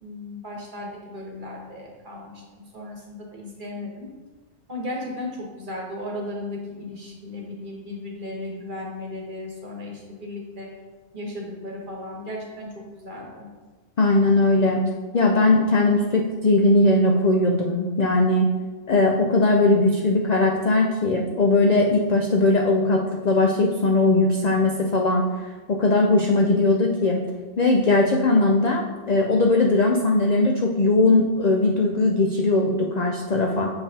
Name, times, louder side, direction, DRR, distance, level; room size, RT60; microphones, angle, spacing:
voice 1, 0.0-4.1 4.7-10.7 11.1-12.7 12.9-13.5, left 1 dB, 40° right, -2 dB, 1.2 m, -35 dB
voice 2, 14.0-18.5 18.9-25.2 25.7-27.2 27.6-33.7, left 2 dB, 65° left, 1 dB, 0.4 m, -19 dB
6.7 x 5.5 x 2.8 m, 1.3 s
omnidirectional pair, 1.3 m